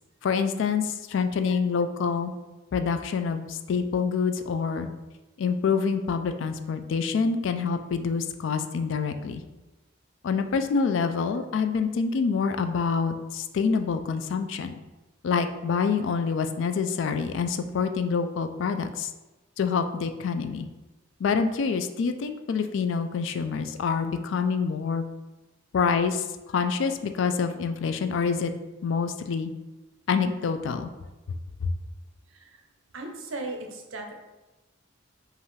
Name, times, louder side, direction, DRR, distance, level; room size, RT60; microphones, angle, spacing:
voice 1, 0.2-2.3 2.7-4.9 5.4-9.4 10.2-14.7 15.2-19.1 19.6-20.7 21.2-25.0 25.7-26.3 26.5-28.5 28.8-29.5 30.1-30.9 31.6-31.7, left 5 dB, 65° left, 8 dB, 0.3 m, -26 dB
voice 2, 32.9-34.1, right 2 dB, 75° right, 3 dB, 0.7 m, -36 dB
5.4 x 2.5 x 3.2 m, 1.1 s
head